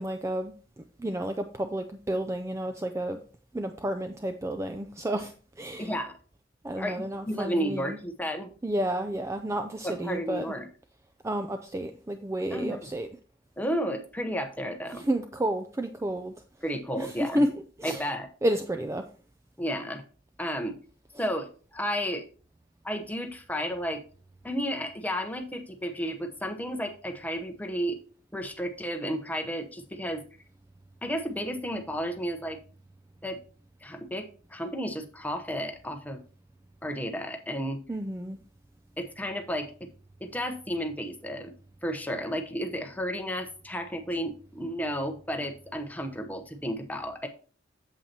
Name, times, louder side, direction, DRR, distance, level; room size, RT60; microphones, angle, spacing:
voice 1, 0.0-3.2 3.5-6.0 6.6-8.0 8.6-10.6 11.2-13.1 14.9-16.4 16.6-18.1 18.4-19.1 21.1-21.3 37.9-38.4, right 1 dB, 15° right, 0.4 m, -31 dB
voice 2, 5.8-6.1 6.8-8.5 9.8-10.7 12.5-12.9 13.6-15.1 16.6-17.4 17.8-18.3 19.6-20.0 20.4-20.8 21.2-22.2 22.8-24.0 24.4-28.0 28.3-30.2 31.0-32.6 33.2-33.4 33.8-36.2 36.8-37.8 39.0-39.9 40.2-41.5 41.8-47.3, equal, 10° left, 0.9 m, -32 dB
8.2 x 7.4 x 2.9 m
head